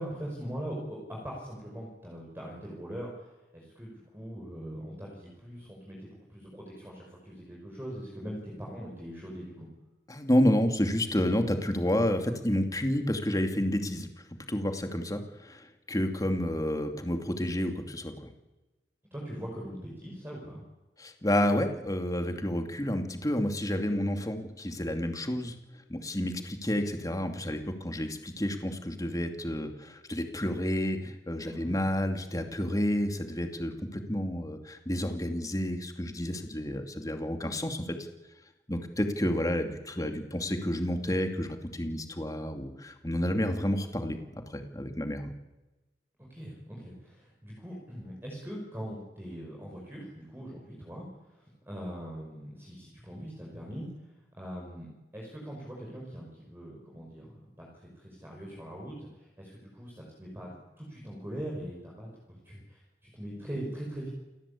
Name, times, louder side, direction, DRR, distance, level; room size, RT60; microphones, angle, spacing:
voice 1, 0.0-9.7 19.1-20.6 31.4-31.7 46.2-64.1, equal, 15° right, -3 dB, 5.6 m, -41 dB
voice 2, 10.1-14.1 14.5-18.3 21.0-25.5 25.9-38.0 38.7-45.3, left 1 dB, 20° left, 5 dB, 2.5 m, -30 dB
29.5 x 18.5 x 8.5 m, 1.1 s
head